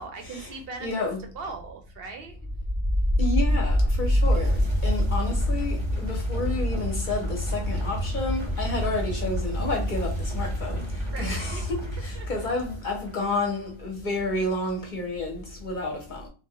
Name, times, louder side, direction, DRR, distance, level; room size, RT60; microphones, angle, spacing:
voice 1, 0.0-1.0 1.3-2.4 11.1-11.7 12.1-12.5, right 4 dB, 65° right, 0.7 m, -39 dB
voice 2, 0.8-1.2 3.2-10.8 11.2-16.3, left 2 dB, 50° left, 0.8 m, -30 dB
sound 1, 2.3-13.1, equal, 30° right, 0.7 m, -26 dB
2.5 x 2.1 x 3.6 m
omnidirectional pair, 1.2 m